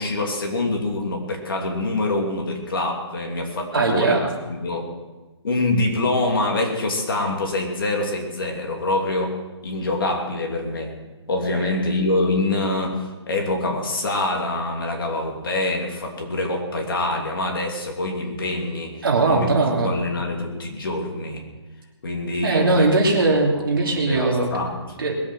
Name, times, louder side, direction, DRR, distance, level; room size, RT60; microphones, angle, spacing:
voice 1, 0.0-4.2 4.5-4.9 5.4-9.4 9.6-10.9 11.3-19.5 19.8-21.5 22.0-22.9 23.2-23.4 23.8-24.8, left 2 dB, 50° left, 1 dB, 2.9 m, -25 dB
voice 2, 3.7-4.3 19.0-19.9 22.4-24.7 25.0-25.2, right 3 dB, 50° right, 0 dB, 3.0 m, -20 dB
21.0 x 8.4 x 6.2 m, 1.2 s
hypercardioid pair, 175°, 15 cm